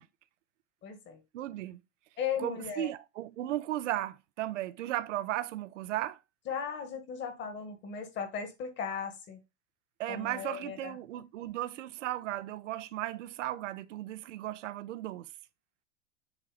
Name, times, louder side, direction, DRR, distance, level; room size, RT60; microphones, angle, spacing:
voice 1, 0.8-1.2 2.2-2.9 6.5-9.4 10.1-11.0, left 7 dB, 30° left, 1.8 m, -37 dB
voice 2, 1.3-1.8 2.4-6.2 10.0-15.3, right 14 dB, 80° right, 0.8 m, -36 dB
7.4 x 3.1 x 5.0 m
supercardioid pair, 135°, 36 cm